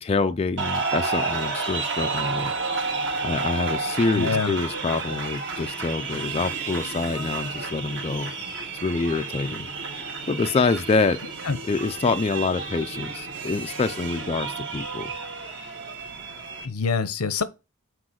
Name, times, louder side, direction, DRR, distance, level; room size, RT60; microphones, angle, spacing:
voice 1, 0.0-2.5 3.2-8.3 8.8-9.7 10.3-11.2 11.6-15.1, left 4 dB, 25° left, 0.3 m, -26 dB
sound 1, 0.6-16.7, right 4 dB, 55° right, 1.7 m, -31 dB
sound 2, 2.0-14.7, right 1 dB, 80° right, 2.0 m, -44 dB
voice 2, 4.1-4.5 11.4-11.6 16.6-17.4, left 4 dB, 90° left, 0.8 m, -25 dB
6.2 x 4.8 x 6.2 m
head